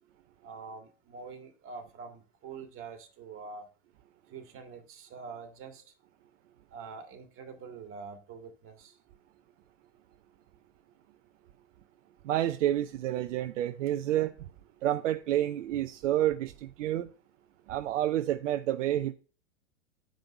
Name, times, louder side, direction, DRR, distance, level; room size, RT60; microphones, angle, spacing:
voice 1, 0.4-3.7 4.3-5.8 6.7-8.9, right 5 dB, 35° right, 2.0 m, -45 dB
voice 2, 12.2-14.3 14.8-17.1 17.7-19.1, right 12 dB, 70° right, 0.7 m, -29 dB
7.6 x 5.3 x 5.2 m
hypercardioid pair, 105°, 38 cm